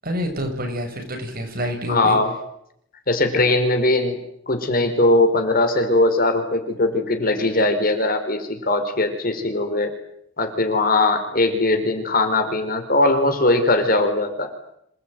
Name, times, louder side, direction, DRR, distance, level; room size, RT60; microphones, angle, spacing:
voice 1, 0.0-2.2, equal, 50° right, 4 dB, 7.3 m, -27 dB
voice 2, 1.9-2.3 3.1-4.2 4.5-9.9 10.4-14.5, left 2 dB, 50° left, 7 dB, 4.8 m, -20 dB
27.5 x 20.0 x 9.4 m, 0.73 s
head